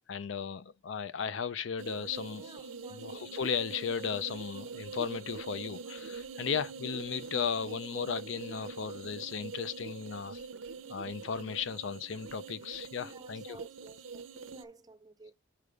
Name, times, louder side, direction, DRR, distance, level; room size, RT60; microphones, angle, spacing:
voice 1, 0.1-2.6 2.9-10.4 10.9-13.6, left 6 dB, 75° left, 0.5 m, -36 dB
sound 1, 1.8-14.6, right 4 dB, 90° right, 0.6 m, -44 dB
voice 2, 2.3-3.2 13.0-15.3, right 2 dB, 20° right, 0.5 m, -52 dB
5.0 x 4.7 x 5.1 m
head